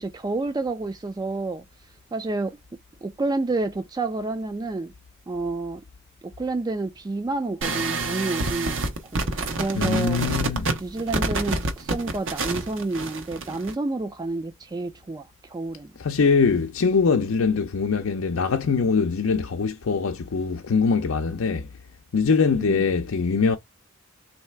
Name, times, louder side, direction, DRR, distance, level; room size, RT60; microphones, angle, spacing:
voice 1, 0.0-1.6 2.1-2.6 3.0-4.9 5.3-5.8 6.2-8.8 9.1-10.2 10.8-15.9 22.6-22.8, right 2 dB, 20° right, 0.3 m, -29 dB
sound 1, 7.6-13.7, right 3 dB, 65° right, 0.9 m, -27 dB
voice 2, 9.8-10.7 16.0-21.7 22.1-23.6, left 5 dB, 90° left, 0.5 m, -22 dB
3.2 x 2.8 x 4.4 m
head